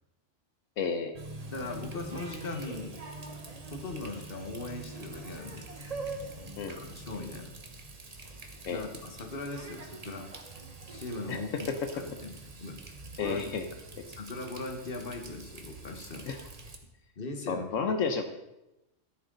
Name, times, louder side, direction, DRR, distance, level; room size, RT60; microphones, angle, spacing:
voice 1, 0.8-1.1 6.6-6.9 8.6-8.9 11.3-11.4 11.7-11.8 13.2-13.6 16.3-16.4 17.5-18.2, left 5 dB, 85° left, 7 dB, 1.2 m, -31 dB
Water tap faucet, 1.1-16.8, right 2 dB, 30° right, 1.2 m, -44 dB
voice 2, 1.5-3.0 3.7-5.7 6.7-7.5 8.7-10.3 10.9-12.3 12.6-12.8 13.2-13.6 14.1-16.3 17.2-17.7 18.0-18.1, left 2 dB, 45° left, 5 dB, 1.6 m, -39 dB
13.5 x 11.0 x 4.0 m, 0.94 s
omnidirectional pair, 1.3 m